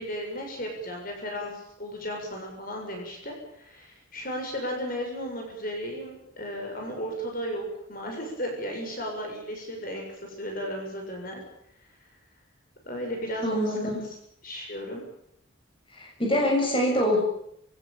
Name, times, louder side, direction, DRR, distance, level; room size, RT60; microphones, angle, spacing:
voice 1, 0.0-11.4 12.9-14.0 14.4-15.0, equal, 45° left, 1 dB, 7.2 m, -35 dB
voice 2, 13.4-14.0 15.9-17.2, left 1 dB, 25° left, -1 dB, 7.3 m, -24 dB
28.0 x 17.5 x 9.2 m, 0.76 s
head